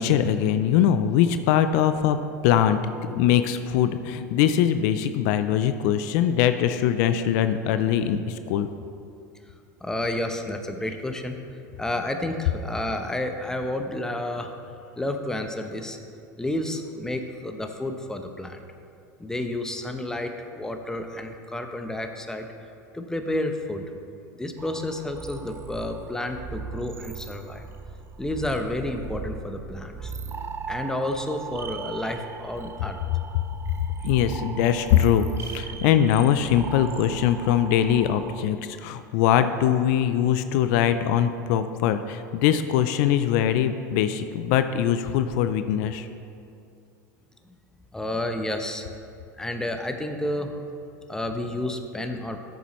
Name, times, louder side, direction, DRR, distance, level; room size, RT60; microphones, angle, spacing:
voice 1, 0.0-2.2 2.4-2.8 3.1-8.7 32.8-32.9 34.0-46.1, left 10 dB, 65° left, 10 dB, 0.4 m, -22 dB
voice 2, 9.8-11.4 11.8-14.5 15.0-16.0 16.4-18.6 19.2-22.5 22.9-23.8 24.3-27.6 28.2-30.2 30.7-33.0 47.9-48.8 49.4-50.6 51.1-52.4, left 1 dB, 5° left, 5 dB, 0.7 m, -30 dB
sound 1, 24.6-38.4, right 5 dB, 25° right, 0.5 m, -38 dB
13.5 x 7.0 x 3.1 m, 2.5 s
hypercardioid pair, 105°, 10 cm